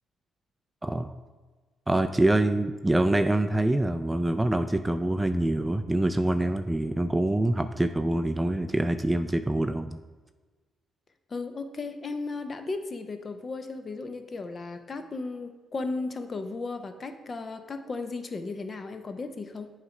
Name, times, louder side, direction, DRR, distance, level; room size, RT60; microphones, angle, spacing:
voice 1, 0.8-1.1 1.9-10.0, right 1 dB, 10° right, 8 dB, 0.3 m, -25 dB
voice 2, 11.3-19.7, left 3 dB, 40° left, 8 dB, 0.6 m, -35 dB
8.0 x 3.2 x 4.8 m, 1.4 s
cardioid pair, 90°, 0 cm